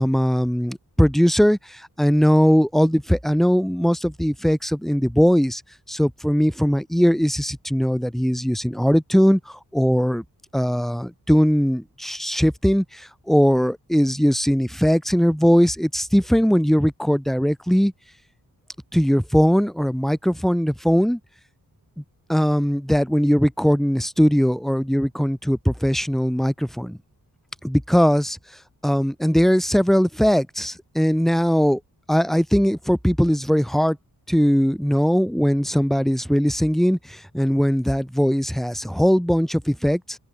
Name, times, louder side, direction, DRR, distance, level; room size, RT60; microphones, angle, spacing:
voice 1, 0.0-5.6 5.9-10.2 10.5-17.9 18.9-21.2 22.3-27.0 27.6-28.4 28.8-31.8 32.1-34.0 34.3-40.2, equal, ahead, 4.7 m, -20 dB
open air
cardioid pair, 75°, 38 cm